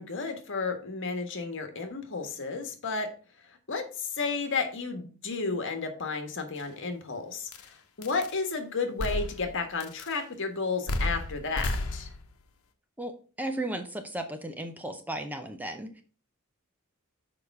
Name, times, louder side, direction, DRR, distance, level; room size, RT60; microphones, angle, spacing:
voice 1, 0.0-3.1 3.4-12.1, left 4 dB, 60° left, 6 dB, 1.5 m, -32 dB
sound 1, 6.6-6.7 7.5-7.7 8.0-8.4 9.0-9.6 9.8-10.2 10.9-12.3, left 1 dB, 80° left, 1.0 m, -32 dB
voice 2, 13.4-16.0, right 1 dB, 10° right, 6 dB, 0.7 m, -35 dB
6.7 x 5.0 x 4.7 m, 0.38 s
head